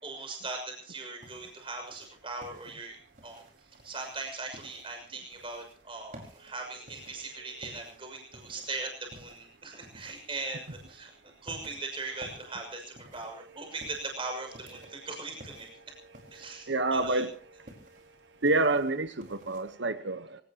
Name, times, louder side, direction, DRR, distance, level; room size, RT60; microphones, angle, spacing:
voice 1, 0.0-3.0 3.2-3.4 3.8-11.1 11.4-15.7 16.3-17.2, right 3 dB, 30° right, 6.3 m, -39 dB
sound 1, 1.2-19.7, right 1 dB, 45° right, 5.0 m, -54 dB
voice 2, 16.4-17.6 18.4-20.4, right 2 dB, 75° right, 1.2 m, -29 dB
25.5 x 18.5 x 3.0 m
head